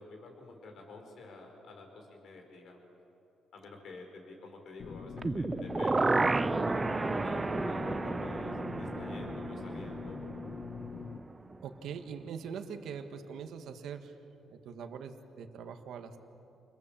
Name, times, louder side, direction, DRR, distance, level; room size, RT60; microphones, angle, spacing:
voice 1, 0.0-2.8 3.5-6.2 6.7-10.2, left 3 dB, 65° left, 3 dB, 4.7 m, -49 dB
sound 1, 4.8-11.2, left 6 dB, 50° left, 1.0 m, -43 dB
sound 2, 5.2-11.2 11.5-11.6, right 3 dB, 25° right, 0.6 m, -32 dB
voice 2, 11.6-14.2 14.5-16.2, right 6 dB, 75° right, 6 dB, 1.4 m, -42 dB
28.5 x 21.5 x 7.4 m, 2.8 s
cardioid pair, 90°, 0 cm